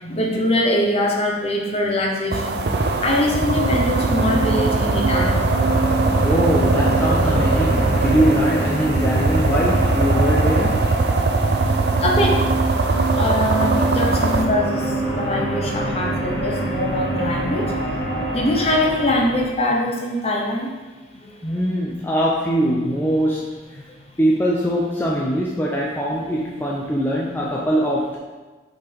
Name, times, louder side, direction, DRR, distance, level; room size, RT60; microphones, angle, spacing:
voice 1, 0.0-2.6 3.0-5.4 12.0-12.5 13.2-14.8 15.2-17.7 18.3-20.7, left 1 dB, 35° left, -1 dB, 0.9 m, -22 dB
sound 1, 2.3-14.5, right 3 dB, 65° right, 0.5 m, -21 dB
sound 2, 2.4-19.4, right 2 dB, 80° left, 1.4 m, -26 dB
voice 2, 6.2-10.9 21.4-23.5 24.2-28.2, equal, 10° left, -4 dB, 0.5 m, -22 dB
5.8 x 5.6 x 3.4 m, 1.2 s
head